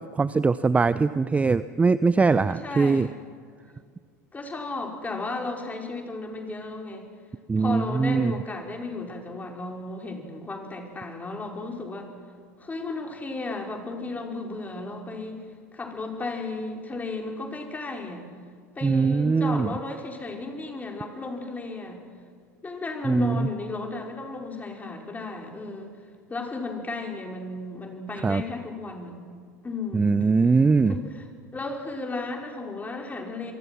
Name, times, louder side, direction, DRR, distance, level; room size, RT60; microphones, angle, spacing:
voice 1, 0.0-3.1 7.5-8.4 18.8-19.7 23.0-23.5 28.2-28.4 29.9-30.9, right 4 dB, 15° right, 16 dB, 0.6 m, -22 dB
voice 2, 2.5-3.1 4.3-7.1 7.6-12.1 12.6-15.4 15.7-18.2 18.8-22.0 22.6-25.9 26.3-29.2 29.6-30.1 30.9-31.3 31.5-33.5, left 3 dB, 15° left, 2 dB, 5.1 m, -34 dB
28.5 x 23.5 x 6.2 m, 2.1 s
figure-of-eight pair, 75°, 9 cm